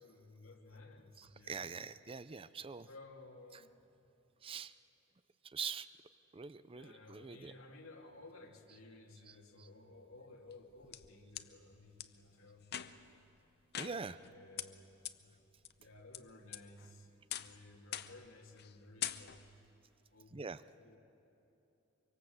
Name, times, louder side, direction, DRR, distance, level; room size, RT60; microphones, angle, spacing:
voice 1, 0.0-1.7 2.9-3.8 6.7-12.9 14.2-14.9 15.2-15.3 15.8-19.4 20.1-20.4 20.8-21.0, left 2 dB, 90° left, 1 dB, 2.5 m, -56 dB
voice 2, 1.2-2.9 3.5-3.6 4.4-4.7 5.4-5.9 6.3-7.5 9.3-9.7 13.8-14.2 20.3-20.6, right 5 dB, 25° right, 14 dB, 0.5 m, -44 dB
sound 1, 10.5-11.5 12.0-12.1 12.6-13.2 13.7-14.3 14.6-14.7 15.1-15.2 15.6-16.2 16.5-16.9 17.3-17.6 17.9-18.3 18.6-18.7 19.0-19.6, left 11 dB, 55° left, 0.7 m, -43 dB
24.5 x 24.5 x 7.8 m, 2.9 s
head